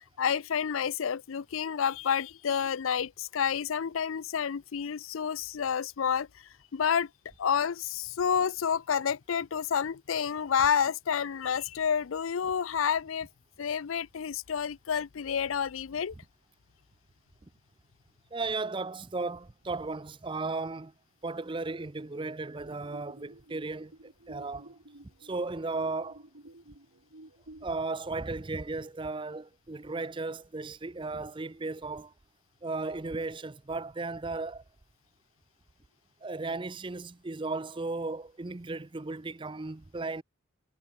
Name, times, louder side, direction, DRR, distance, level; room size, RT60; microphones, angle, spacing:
voice 1, 0.0-6.3 6.7-7.1 7.4-13.3 13.6-16.1, left 7 dB, 85° left, 0.5 m, -29 dB
voice 2, 18.3-20.9 21.2-23.9 24.3-24.8 25.2-26.2 27.6-32.1 32.6-34.6 36.2-40.2, right 3 dB, 25° right, 0.5 m, -35 dB
sound 1, 22.6-27.6, right 1 dB, 80° right, 2.7 m, -52 dB
head